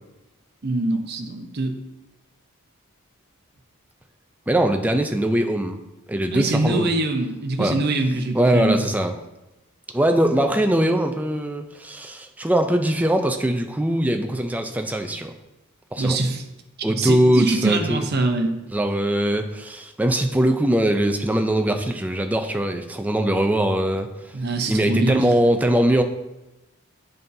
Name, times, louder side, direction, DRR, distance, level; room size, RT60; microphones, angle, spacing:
voice 1, 0.6-1.8 6.3-8.8 16.0-16.4 16.9-18.6 24.3-25.3, right 2 dB, 45° right, 5 dB, 0.7 m, -23 dB
voice 2, 4.5-5.8 6.1-6.9 7.6-7.7 8.3-9.1 9.9-15.3 15.9-16.2 16.8-18.0 18.7-24.1 24.7-26.0, right 1 dB, 5° right, 5 dB, 0.4 m, -21 dB
9.0 x 5.4 x 2.7 m, 1.0 s
head